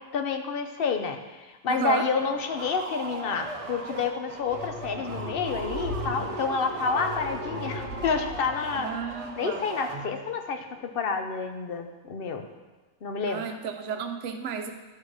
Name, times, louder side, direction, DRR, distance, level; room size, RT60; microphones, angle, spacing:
voice 1, 0.1-8.9 9.4-12.4 13.0-13.5, left 5 dB, 50° left, 6 dB, 0.8 m, -29 dB
voice 2, 1.7-2.1 8.8-9.6 13.3-14.7, right 7 dB, 60° right, 5 dB, 1.0 m, -32 dB
sound 1, 2.1-10.4, right 2 dB, 35° right, 0.6 m, -39 dB
sound 2, 4.4-9.2, left 1 dB, 75° left, 1.9 m, -37 dB
12.5 x 4.5 x 4.8 m, 1.3 s
omnidirectional pair, 1.5 m